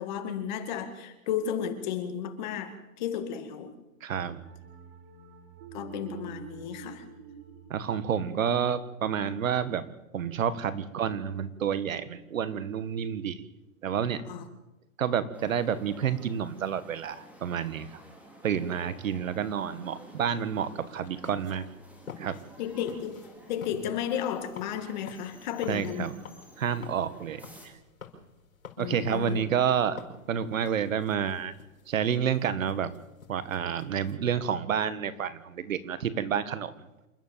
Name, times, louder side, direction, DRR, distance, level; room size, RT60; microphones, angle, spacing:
voice 1, 0.0-3.7 4.2-4.4 5.7-7.1 14.3-14.5 22.6-26.1 28.8-29.4, left 9 dB, 35° left, 8 dB, 2.2 m, -33 dB
voice 2, 4.0-4.4 7.7-9.9 10.1-13.4 13.8-14.2 15.0-17.9 18.4-21.7 22.2-22.4 25.7-26.1 26.6-27.7 28.8-30.0 30.3-31.5 31.9-32.9 33.3-36.7, right 8 dB, 70° right, 14 dB, 1.8 m, -29 dB
sound 1, 4.4-9.6, right 7 dB, 40° right, 3.9 m, -48 dB
sound 2, 15.3-27.7, equal, 5° right, 2.5 m, -53 dB
sound 3, 20.5-34.2, left 5 dB, 90° left, 5.5 m, -50 dB
28.0 x 12.5 x 7.5 m, 0.98 s
hypercardioid pair, 165°, 41 cm